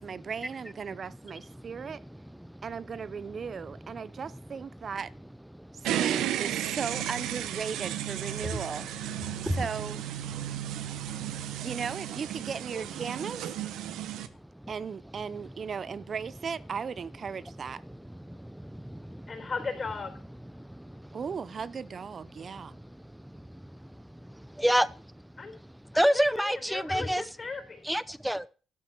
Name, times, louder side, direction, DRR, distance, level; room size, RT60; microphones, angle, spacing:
voice 1, 0.0-2.0 2.6-5.1 5.7-9.0 9.6-10.0 11.6-13.5 14.7-17.8 21.1-22.8, right 6 dB, 45° right, 0.5 m, -37 dB
voice 2, 1.4-2.7 3.4-3.5 4.1-4.2 5.5-6.0 8.3-8.8 9.2-9.7 10.3-11.7 13.9-14.7 17.5-17.6 17.8-19.5 20.5-21.2 22.3-23.2 23.8-27.3 27.8-28.5, equal, 5° right, 0.7 m, -32 dB
sound 1, 5.8-14.3, right 11 dB, 85° right, 0.9 m, -34 dB
voice 3, 19.3-20.1 25.4-25.5 25.9-27.9, left 4 dB, 35° left, 3.9 m, -37 dB
12.0 x 6.9 x 6.0 m
cardioid pair, 90°, 0 cm